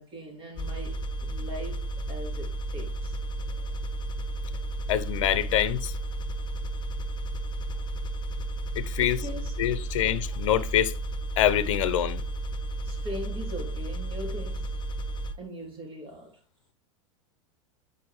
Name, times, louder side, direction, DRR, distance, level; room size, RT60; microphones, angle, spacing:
voice 1, 0.0-3.2 9.0-9.8 12.8-14.8 15.4-16.4, equal, 30° right, 3.2 m, -40 dB
sound 1, 0.6-15.3, right 2 dB, 30° left, 1.0 m, -33 dB
voice 2, 4.9-5.9 8.8-9.2 9.6-11.0 11.4-12.2, left 11 dB, 70° left, 0.7 m, -25 dB
8.6 x 4.9 x 3.2 m
hypercardioid pair, 105°, 17 cm